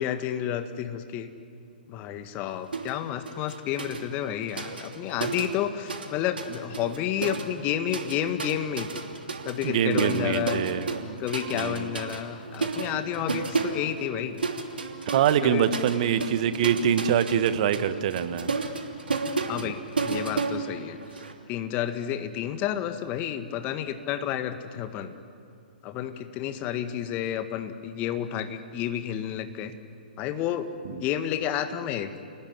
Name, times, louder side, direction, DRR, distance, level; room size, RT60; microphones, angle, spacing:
voice 1, 0.0-1.3 1.9-8.9 9.5-10.7 11.2-14.4 15.4-15.7 19.5-21.0 21.5-25.2 25.8-29.7 30.2-32.1, left 10 dB, 30° left, 9 dB, 1.8 m, -30 dB
sound 1, 2.7-3.0 3.3-6.1 6.4-21.3, right 4 dB, 75° right, 2.9 m, -32 dB
voice 2, 9.6-11.2 11.5-11.9 15.1-18.5 19.5-19.6 30.8-30.9, right 9 dB, 45° right, 12 dB, 1.4 m, -24 dB
29.5 x 19.0 x 9.8 m, 2.5 s
figure-of-eight pair, 120°, 5 cm